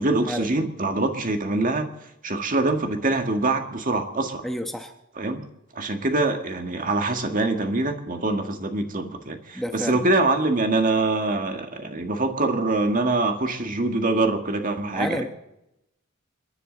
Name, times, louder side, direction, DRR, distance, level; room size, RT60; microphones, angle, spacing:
voice 1, 0.0-1.9 2.2-4.4 5.2-5.4 5.7-15.3, right 2 dB, 40° right, 6 dB, 1.7 m, -24 dB
voice 2, 4.4-4.9 9.5-10.1 14.9-15.3, equal, ahead, 5 dB, 1.0 m, -30 dB
29.0 x 11.0 x 4.0 m, 0.87 s
head